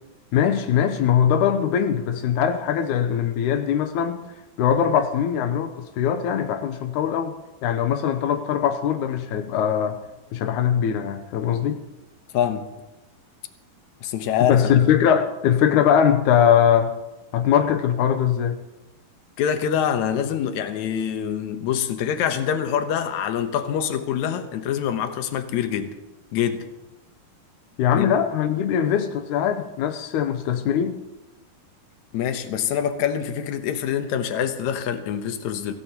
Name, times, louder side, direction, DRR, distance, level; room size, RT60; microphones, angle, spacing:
voice 1, 0.3-4.2 4.6-10.0 10.3-11.8 14.5-16.9 17.3-18.6 27.8-31.0, left 8 dB, 85° left, 1.7 m, -21 dB
voice 2, 12.3-12.7 14.0-14.7 19.4-25.9 26.3-26.6 27.9-28.1 32.1-35.7, left 9 dB, 70° left, 1.8 m, -25 dB
25.0 x 16.5 x 3.0 m
omnidirectional pair, 4.6 m